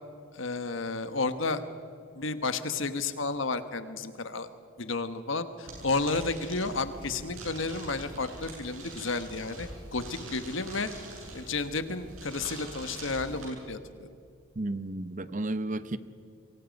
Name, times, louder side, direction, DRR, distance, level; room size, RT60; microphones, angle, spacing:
voice 1, 0.3-1.6 2.1-4.5 4.8-10.9 11.3-14.1, left 3 dB, 60° left, 10 dB, 1.3 m, -32 dB
sound 1, 5.7-13.5, right 2 dB, 70° right, 7.7 m, -44 dB
voice 2, 14.6-16.0, right 2 dB, 35° right, 13 dB, 0.8 m, -32 dB
27.0 x 23.0 x 5.3 m, 2.4 s
head